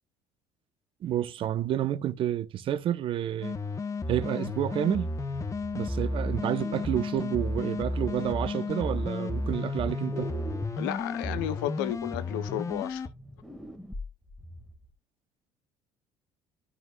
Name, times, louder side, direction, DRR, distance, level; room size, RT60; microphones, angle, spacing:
voice 1, 1.0-3.6 4.1-5.1 5.7-10.3, right 11 dB, 55° right, 1.0 m, -29 dB
sound 1, 3.4-13.1, left 2 dB, 30° left, 1.1 m, -32 dB
sound 2, 4.9-7.3 7.8-9.8 10.1-14.9, right 1 dB, ahead, 2.0 m, -44 dB
voice 2, 10.8-13.1, left 12 dB, 85° left, 0.7 m, -33 dB
13.0 x 4.5 x 2.4 m
supercardioid pair, 75°, 11 cm